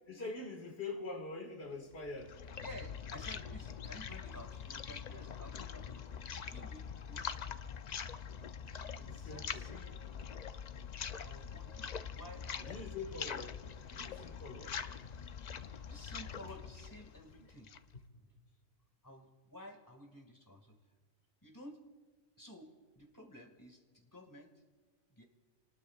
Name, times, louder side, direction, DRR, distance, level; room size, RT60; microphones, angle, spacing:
voice 1, 0.1-2.4 9.0-9.7 12.6-15.1, left 3 dB, 50° left, 2.0 m, -45 dB
sound 1, 1.9-17.9, left 7 dB, 70° left, 0.4 m, -44 dB
voice 2, 2.6-7.4 8.7-10.0 11.2-13.2 15.9-17.7 18.1-18.3 19.0-20.8 21.4-21.8 22.4-22.7 23.0-24.5 25.1-25.2, equal, 15° left, 1.9 m, -53 dB
28.0 x 19.5 x 2.4 m
omnidirectional pair, 1.4 m